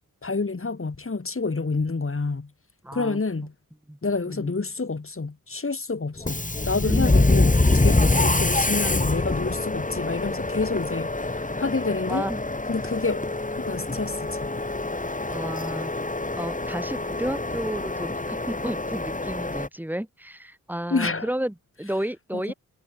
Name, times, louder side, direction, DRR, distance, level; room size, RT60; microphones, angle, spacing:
voice 1, 0.2-2.5 2.9-3.5 4.0-12.2 12.7-13.2 13.6-14.5 20.9-21.3 22.3-22.4, left 3 dB, 40° left, 6.2 m, -28 dB
voice 2, 2.8-3.2 3.9-4.0 4.3-4.5 6.8-7.2 12.1-12.4 15.3-15.9 16.4-22.5, right 1 dB, 5° right, 2.9 m, -32 dB
Subway metro underground, 6.2-19.7, left 2 dB, 20° left, 5.0 m, -25 dB
wide cardioid pair, 125°, 34 cm